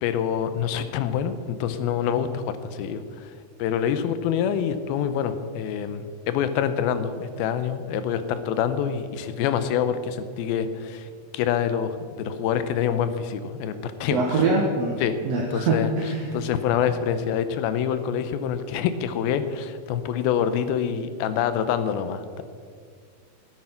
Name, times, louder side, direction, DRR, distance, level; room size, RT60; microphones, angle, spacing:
voice 1, 0.0-3.3 3.6-14.5 15.0-15.2 15.5-22.4, left 8 dB, 75° left, 11 dB, 2.5 m, -26 dB
voice 2, 14.1-15.0 15.2-16.3, right 3 dB, 65° right, 0 dB, 1.6 m, -23 dB
15.5 x 9.3 x 5.8 m, 2.1 s
omnidirectional pair, 4.5 m